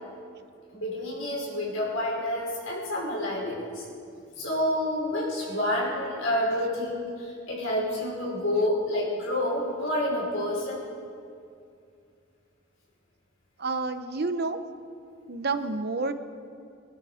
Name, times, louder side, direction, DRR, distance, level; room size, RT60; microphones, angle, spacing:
voice 1, 0.7-3.8 4.4-10.8, left 1 dB, 85° left, -4 dB, 5.4 m, -28 dB
voice 2, 13.6-14.6 15.3-16.1, right 3 dB, 50° right, 9 dB, 0.8 m, -29 dB
23.0 x 12.0 x 5.0 m, 2.4 s
head